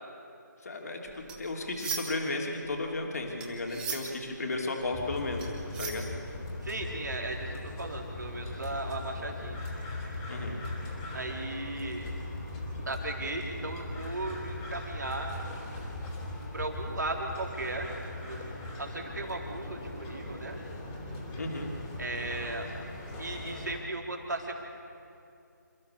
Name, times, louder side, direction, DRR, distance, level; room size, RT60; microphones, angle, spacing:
voice 1, 0.6-6.1 10.3-10.6 21.4-21.7, left 2 dB, 55° left, 1 dB, 3.1 m, -34 dB
sound 1, 1.1-2.3 2.6-6.6, right 6 dB, 10° right, 1.3 m, -39 dB
sound 2, 4.9-23.8, left 2 dB, 15° left, 3.0 m, -39 dB
voice 2, 6.6-9.6 11.1-12.1 12.9-15.3 16.5-17.9 18.3-18.5 18.8-20.6 22.0-22.7 23.2-24.6, right 2 dB, 70° right, 1 dB, 3.8 m, -36 dB
27.5 x 14.5 x 7.0 m, 2.5 s
figure-of-eight pair, 155°, 10 cm